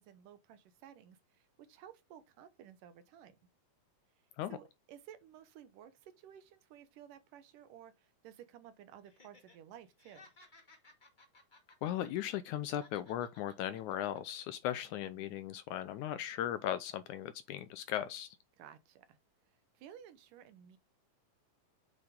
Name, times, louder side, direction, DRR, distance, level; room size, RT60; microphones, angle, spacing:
voice 1, 0.0-3.4 4.5-10.3 14.9-15.3 18.6-19.2 19.5-20.8, right 10 dB, 75° right, 2.5 m, -55 dB
Laughter, 9.0-9.6 9.9-12.5 12.8-14.4 14.8-14.9, left 2 dB, 20° left, 1.4 m, -61 dB
voice 2, 11.8-18.4, left 11 dB, 80° left, 1.8 m, -37 dB
7.9 x 5.2 x 3.6 m
omnidirectional pair, 4.0 m